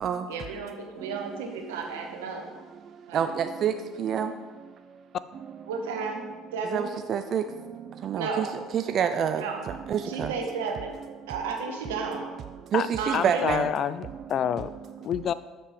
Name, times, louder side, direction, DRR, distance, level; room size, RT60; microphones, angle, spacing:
voice 1, 0.3-2.5 3.1-3.2 5.7-6.3 6.5-6.9 8.2-8.5 9.3-9.7 10.1-10.9 11.3-12.3 13.0-13.4, right 4 dB, 80° right, 3 dB, 1.1 m, -33 dB
voice 2, 3.1-3.7 4.0-4.3 6.7-7.4 8.0-8.5 8.7-9.4 9.9-10.3 12.7-13.7, right 8 dB, 50° right, 8 dB, 0.4 m, -27 dB
voice 3, 13.1-14.7 15.0-15.3, left 9 dB, 50° left, 15 dB, 0.3 m, -27 dB
7.4 x 6.6 x 3.6 m, 1.3 s
hypercardioid pair, 65°, 0 cm